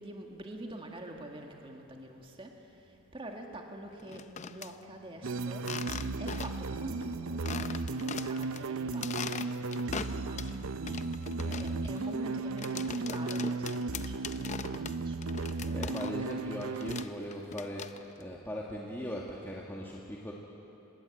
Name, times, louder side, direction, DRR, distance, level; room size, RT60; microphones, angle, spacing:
voice 1, 0.0-11.1 11.6-16.6 17.1-17.5, right 1 dB, 25° right, 2 dB, 1.9 m, -46 dB
sound 1, 4.0-4.7 5.6-6.7 7.0-7.1 7.4-8.6 8.9-10.5 10.9-16.4 16.6-18.2, left 6 dB, 35° left, 0.6 m, -41 dB
sound 2, 5.2-17.0, right 3 dB, 75° right, 0.7 m, -35 dB
voice 2, 11.4-12.1 15.6-20.3, equal, 10° left, -3 dB, 1.7 m, -40 dB
26.5 x 20.5 x 8.4 m, 3.0 s
head